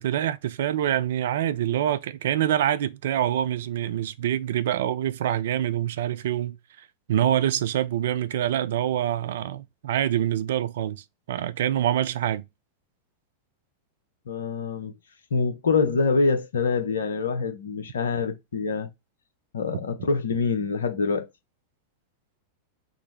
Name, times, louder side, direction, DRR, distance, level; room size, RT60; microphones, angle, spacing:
voice 1, 0.0-12.5, right 11 dB, 60° right, 0.3 m, -26 dB
voice 2, 14.3-14.9 15.3-18.9 19.5-21.3, left 4 dB, 70° left, 0.7 m, -25 dB
3.8 x 2.0 x 3.1 m
figure-of-eight pair, 90°, 0 cm